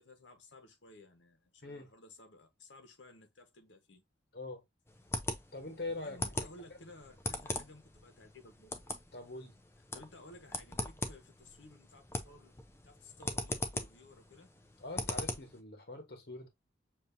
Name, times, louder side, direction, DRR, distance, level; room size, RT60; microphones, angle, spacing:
voice 1, 0.0-4.0 5.8-8.8 9.9-12.6 12.8-14.5, left 2 dB, 85° left, 1.2 m, -56 dB
sound 1, 4.9-15.6, left 2 dB, 15° left, 0.5 m, -41 dB
voice 2, 5.5-6.2 6.7-6.8 9.1-9.6 14.8-16.5, left 2 dB, 55° left, 1.1 m, -43 dB
6.9 x 2.7 x 2.6 m
head